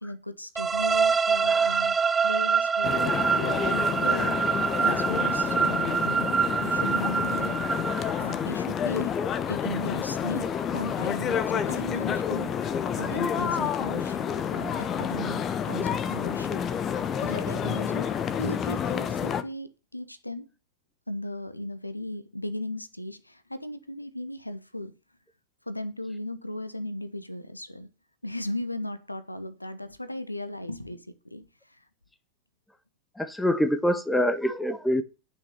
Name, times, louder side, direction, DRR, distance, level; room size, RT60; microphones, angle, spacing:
voice 1, 0.0-1.9 2.2-4.4 4.8-6.3 6.6-7.6 8.2-9.2 9.5-12.5 13.0-14.2 14.5-16.6 17.2-20.5 21.1-24.9 25.7-27.9 28.2-31.5 31.8-31.9, left 1 dB, 85° left, 13 dB, 1.0 m, -36 dB
sound 1, 0.6-8.4, right 6 dB, 15° right, 0.4 m, -25 dB
voice 2, 1.4-1.8 3.3-3.7 33.1-35.0, equal, 5° left, 12 dB, 1.2 m, -26 dB
sound 2, 2.8-19.4, left 8 dB, 25° left, 1.0 m, -29 dB
10.5 x 5.9 x 6.7 m, 0.31 s
figure-of-eight pair, 90°, 0 cm